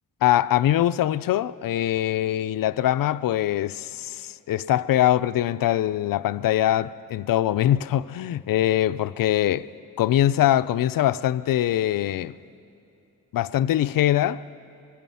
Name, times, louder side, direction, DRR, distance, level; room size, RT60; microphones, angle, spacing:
voice 1, 0.2-9.7 10.0-12.4 13.3-14.4, left 12 dB, 90° left, 0.5 m, -22 dB
25.0 x 21.0 x 5.6 m
wide cardioid pair, 175°, 33 cm